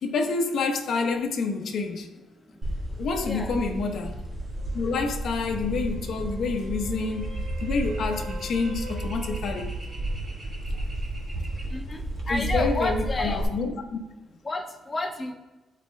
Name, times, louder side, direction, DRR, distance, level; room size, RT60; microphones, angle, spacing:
voice 1, 0.0-2.1 3.0-4.2 4.7-9.7 12.3-14.0, left 4 dB, 60° left, 0.8 m, -28 dB
sound 1, 2.6-13.4, right 1 dB, 30° right, 1.5 m, -32 dB
sound 2, 4.6-10.2 14.3-14.4, right 2 dB, 55° right, 1.1 m, -46 dB
voice 2, 12.3-13.4 14.4-15.3, left 2 dB, 20° left, 0.9 m, -30 dB
12.5 x 4.2 x 2.2 m
cardioid pair, 150°, 0 cm